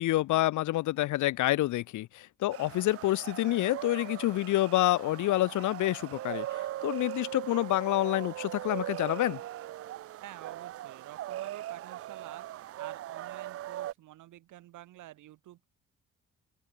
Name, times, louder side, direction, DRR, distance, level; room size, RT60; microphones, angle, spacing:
voice 1, 0.0-9.4, left 16 dB, 80° left, 0.8 m, -28 dB
sound 1, 2.5-13.9, right 13 dB, 50° right, 0.4 m, -40 dB
voice 2, 10.2-12.4 12.8-15.7, right 15 dB, 85° right, 2.7 m, -49 dB
open air
cardioid pair, 90°, 30 cm